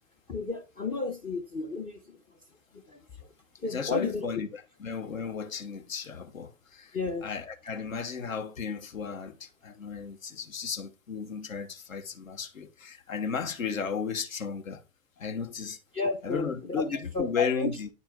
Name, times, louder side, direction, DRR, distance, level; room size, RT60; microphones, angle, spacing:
voice 1, 0.3-2.0 2.9-3.0 3.6-4.3 6.9-7.3 15.9-16.8 17.1-17.7, left 3 dB, 15° left, 0.4 m, -32 dB
voice 2, 3.6-14.8 15.2-15.8 16.2-17.9, left 6 dB, 75° left, 1.1 m, -34 dB
9.2 x 4.4 x 3.5 m
figure-of-eight pair, 100°, 41 cm